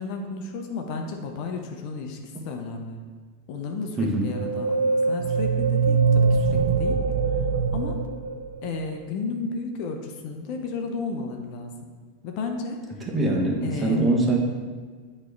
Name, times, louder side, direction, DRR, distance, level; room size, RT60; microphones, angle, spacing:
voice 1, 0.0-2.2 2.4-3.1 3.5-7.0 7.7-8.0 8.6-11.9 12.2-12.8 13.6-14.1, left 4 dB, 50° left, 3 dB, 0.8 m, -33 dB
voice 2, 4.0-4.3 13.1-14.4, right 2 dB, 20° right, 0 dB, 1.3 m, -23 dB
sound 1, 4.3-8.9, right 4 dB, 75° right, 0.4 m, -23 dB
8.3 x 3.2 x 4.6 m, 1.5 s
hypercardioid pair, 90°, 0 cm